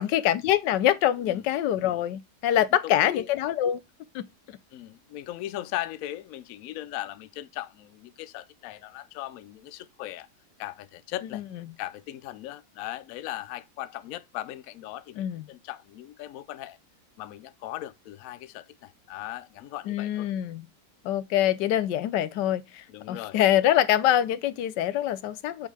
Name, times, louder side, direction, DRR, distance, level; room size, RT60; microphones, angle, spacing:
voice 1, 0.0-3.8 4.1-4.6 11.3-11.4 15.2-15.5 19.9-20.6 21.0-25.7, left 12 dB, 85° left, 1.3 m, -25 dB
voice 2, 2.8-3.3 4.7-10.3 10.6-11.4 11.8-16.8 17.2-20.3 22.9-23.4, left 14 dB, 70° left, 0.9 m, -38 dB
6.5 x 5.4 x 3.3 m
omnidirectional pair, 1.8 m